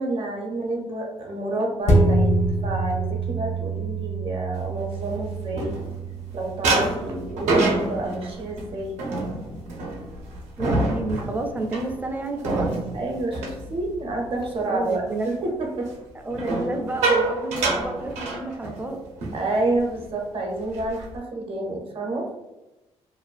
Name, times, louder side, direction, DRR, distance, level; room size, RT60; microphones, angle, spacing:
voice 1, 0.0-5.8 6.3-9.0 12.9-15.9 19.3-22.3, right 2 dB, 50° right, 1 dB, 0.7 m, -29 dB
sound 1, 1.9-10.7 11.1-11.2, right 2 dB, 70° left, 0.5 m, -27 dB
sound 2, 4.8-6.2 6.6-14.5 14.8-15.1 16.3-18.9 19.2-19.4 19.7-20.0 20.5-21.2, right 2 dB, 90° right, 0.6 m, -27 dB
voice 2, 10.6-12.7 14.7-15.3 16.2-19.0, right 2 dB, 15° right, 4 dB, 0.4 m, -30 dB
2.5 x 2.2 x 2.4 m, 1.0 s
cardioid pair, 90°, 12 cm